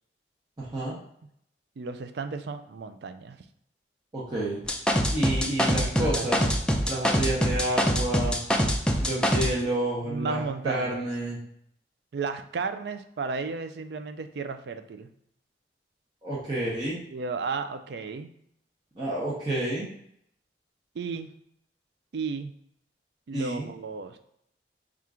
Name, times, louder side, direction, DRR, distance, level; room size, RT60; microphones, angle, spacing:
voice 1, 0.6-1.0 4.1-4.6 5.1-6.4 6.9-8.4 9.0-11.4 16.2-17.0 19.0-19.9 23.3-23.7, right 1 dB, 25° right, -7 dB, 0.7 m, -29 dB
voice 2, 1.8-3.4 5.8-6.5 10.0-11.0 12.1-15.1 17.1-18.3 20.9-21.3 22.1-22.5 23.3-24.2, right 4 dB, 65° right, 9 dB, 0.4 m, -34 dB
sound 1, 4.7-9.5, equal, 5° left, 0.4 m, -24 dB
4.3 x 2.4 x 3.6 m, 0.73 s
head